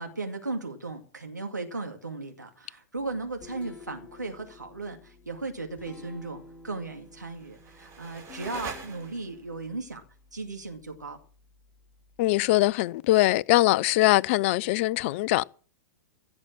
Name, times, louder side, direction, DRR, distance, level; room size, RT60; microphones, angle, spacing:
voice 1, 0.0-10.0 10.3-11.2, right 3 dB, 85° right, 2.3 m, -36 dB
Guitar, 3.0-12.7, left 3 dB, 15° left, 4.2 m, -52 dB
sound 1, 7.1-9.5, right 5 dB, 30° right, 3.2 m, -43 dB
voice 2, 12.2-15.4, left 18 dB, 45° left, 0.6 m, -22 dB
16.0 x 7.4 x 7.7 m
figure-of-eight pair, 105°, 9 cm